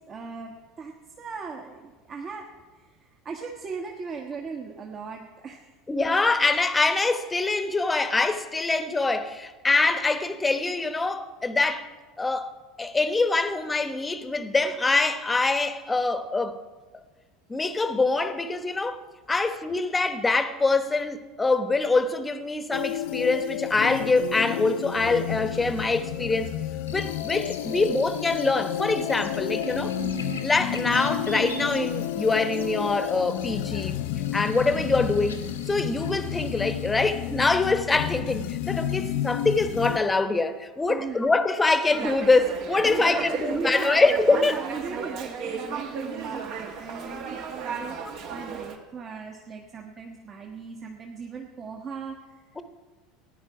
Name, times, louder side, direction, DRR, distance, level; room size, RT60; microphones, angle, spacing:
voice 1, 0.1-2.5 2.7-5.7 34.4-34.7 40.9-41.2 42.8-52.4, right 5 dB, 35° right, 1.3 m, -38 dB
voice 2, 5.9-11.9 12.2-12.5 12.8-16.6 17.5-19.0 19.3-26.5 26.9-29.9 30.4-34.0 34.3-35.4 35.7-44.6 52.6-52.7, left 3 dB, 15° left, 1.0 m, -24 dB
sound 1, 22.7-40.0, left 12 dB, 65° left, 0.5 m, -31 dB
Buzz, 26.9-36.9, equal, 90° left, 1.4 m, -40 dB
Dog, 41.8-48.8, right 6 dB, 55° right, 1.5 m, -34 dB
15.0 x 9.9 x 4.8 m
figure-of-eight pair, 75°, 0 cm